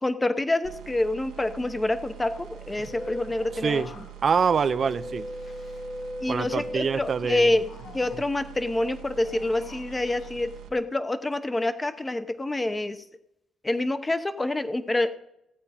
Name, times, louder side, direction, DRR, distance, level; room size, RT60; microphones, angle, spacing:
voice 1, 0.0-3.8 6.2-7.7 7.9-13.0 13.6-15.1, left 2 dB, 15° left, 11 dB, 0.9 m, -27 dB
sound 1, 0.6-10.7, right 13 dB, 85° right, 1.4 m, -45 dB
sound 2, 2.4-7.4 7.8-8.3, left 1 dB, 50° left, 1.5 m, -39 dB
voice 2, 4.2-5.3 6.3-7.5, right 6 dB, 45° right, 12 dB, 0.6 m, -25 dB
sound 3, 7.2-8.5 9.1-10.7, left 5 dB, 70° left, 1.7 m, -50 dB
16.0 x 8.6 x 4.3 m, 0.85 s
cardioid pair, 90°, 0 cm